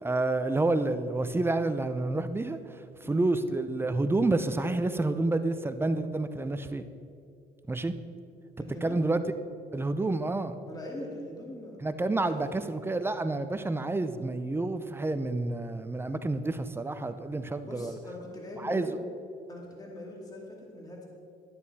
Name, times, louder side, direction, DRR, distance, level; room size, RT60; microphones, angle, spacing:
voice 1, 0.0-2.8 3.1-6.8 7.7-7.9 8.8-9.2 9.7-10.5 11.8-18.0 18.6-18.9, right 2 dB, 15° right, 10 dB, 0.6 m, -29 dB
voice 2, 8.6-9.0 10.6-11.8 12.2-12.4 17.6-18.9 19.5-21.1, left 1 dB, 20° left, -1 dB, 2.3 m, -42 dB
12.0 x 9.4 x 4.2 m, 2.5 s
cardioid pair, 110°, 17 cm